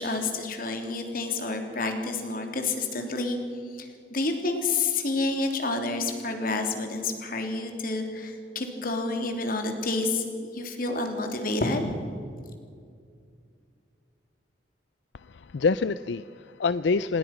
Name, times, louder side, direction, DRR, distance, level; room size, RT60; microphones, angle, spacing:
voice 1, 0.0-3.4 3.7-10.2 10.5-11.8, left 3 dB, 50° left, 4 dB, 3.3 m, -29 dB
voice 2, 15.1-17.2, left 4 dB, 75° left, 15 dB, 0.5 m, -26 dB
26.5 x 20.5 x 6.0 m, 2.2 s
head